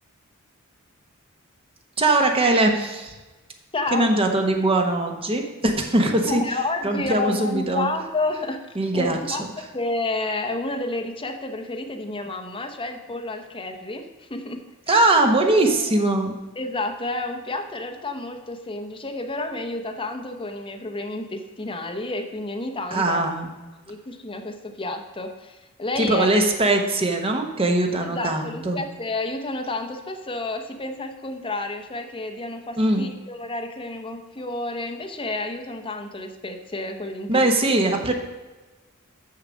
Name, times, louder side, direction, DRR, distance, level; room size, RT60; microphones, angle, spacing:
voice 1, 2.0-3.1 3.9-6.6 6.8-7.9 8.8-9.5 14.9-16.4 22.9-23.5 26.0-28.8 32.8-33.1 37.3-38.1, right 2 dB, 25° right, 3 dB, 1.0 m, -21 dB
voice 2, 3.7-4.1 6.2-8.6 8.9-9.4 9.7-15.0 15.5-15.7 16.6-23.2 23.9-26.3 28.0-37.4, left 2 dB, 25° left, 5 dB, 0.8 m, -30 dB
6.7 x 6.5 x 6.2 m, 1.2 s
head